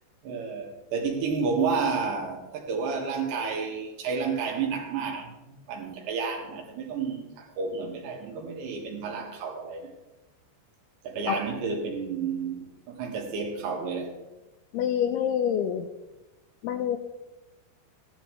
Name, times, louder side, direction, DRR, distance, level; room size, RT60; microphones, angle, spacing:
voice 1, 0.2-9.9 11.0-14.2, right 5 dB, 75° right, 4.0 m, -31 dB
voice 2, 14.7-15.9 16.6-17.0, left 9 dB, 85° left, 2.3 m, -26 dB
16.0 x 12.0 x 3.2 m
omnidirectional pair, 5.1 m